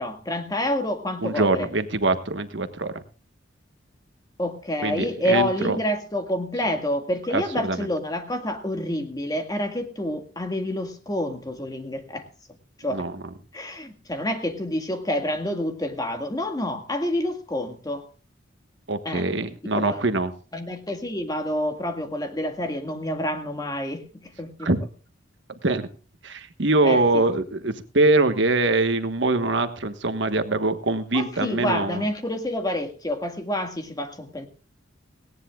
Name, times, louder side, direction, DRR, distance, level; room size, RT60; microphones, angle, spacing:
voice 1, 0.0-1.7 4.4-12.3 12.8-13.1 13.5-18.1 19.1-19.3 19.7-20.0 20.5-24.7 26.8-27.0 31.1-34.5, left 1 dB, 20° left, 5 dB, 1.9 m, -28 dB
voice 2, 1.2-2.9 4.8-5.8 7.3-7.8 12.9-13.1 18.9-20.3 24.6-24.8 25.6-25.9 26.2-32.0, right 2 dB, 65° right, 9 dB, 1.3 m, -23 dB
18.5 x 17.5 x 2.4 m, 0.36 s
head